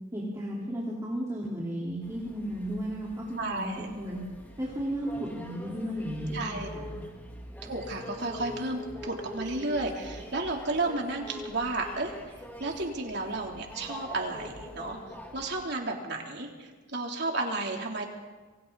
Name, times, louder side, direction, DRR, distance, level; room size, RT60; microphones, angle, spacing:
voice 1, 0.1-4.2 4.6-7.0, equal, 15° right, -5 dB, 4.2 m, -34 dB
sound 1, 2.0-15.6, equal, 10° left, 3.3 m, -44 dB
voice 2, 3.4-3.9 6.3-6.8 7.6-12.1 12.6-15.0 15.3-18.1, right 2 dB, 55° right, 0 dB, 3.5 m, -32 dB
28.0 x 24.0 x 4.2 m, 1.3 s
head